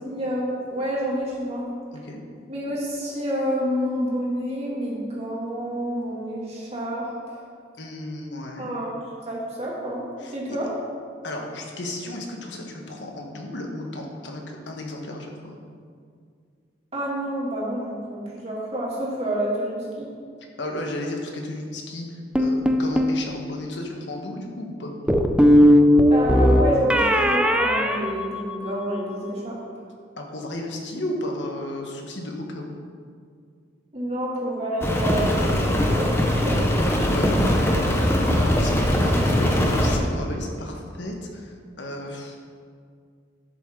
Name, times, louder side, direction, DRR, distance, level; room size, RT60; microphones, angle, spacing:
voice 1, 0.0-1.7 2.5-7.4 8.6-9.0 9.3-10.7 16.9-20.1 26.1-29.6 33.9-36.6, equal, 35° right, -5 dB, 2.5 m, -28 dB
voice 2, 7.8-8.7 10.2-10.6 11.2-15.6 20.6-24.9 30.2-32.7 37.1-42.4, left 1 dB, 70° left, 1 dB, 1.4 m, -34 dB
sound 1, 22.4-23.2 25.1-28.8, equal, 5° right, 0.5 m, -18 dB
Rain, 34.8-40.0, equal, 15° left, 0.9 m, -21 dB
11.5 x 7.4 x 3.8 m, 2.1 s
head